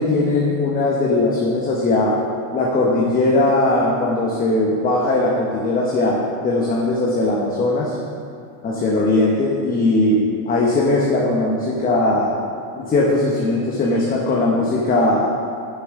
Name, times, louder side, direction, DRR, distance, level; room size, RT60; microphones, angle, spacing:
voice 1, 0.0-2.1 2.5-8.0 8.6-10.2 10.5-12.4 12.7-15.3, left 2 dB, 20° left, -4 dB, 0.8 m, -19 dB
9.0 x 7.0 x 3.5 m, 2.4 s
supercardioid pair, 145°, 48 cm